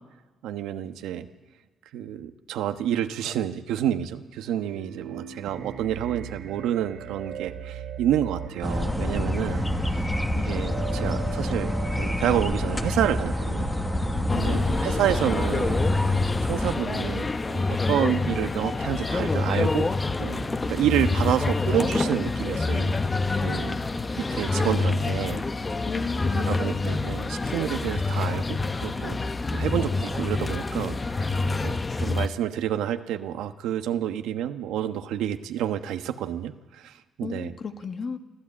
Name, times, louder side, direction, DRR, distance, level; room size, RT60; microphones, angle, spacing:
voice 1, 0.4-1.3 1.9-10.1 10.4-13.7 14.4-15.8 16.4-19.9 20.2-22.9 23.4-23.8 24.2-25.4 26.5-29.2 29.5-37.5, right 11 dB, 90° right, 8 dB, 1.1 m, -29 dB
sound 1, 4.5-15.5, right 8 dB, 75° right, 2.4 m, -39 dB
sound 2, 8.6-16.8, left 1 dB, 10° left, 1.4 m, -27 dB
voice 2, 14.3-15.1 25.8-26.9 37.2-38.2, left 5 dB, 45° left, 7 dB, 1.5 m, -33 dB
sound 3, 14.3-32.3, left 3 dB, 25° left, 0.9 m, -27 dB
24.5 x 14.0 x 8.7 m, 1.2 s
cardioid pair, 90°, 0 cm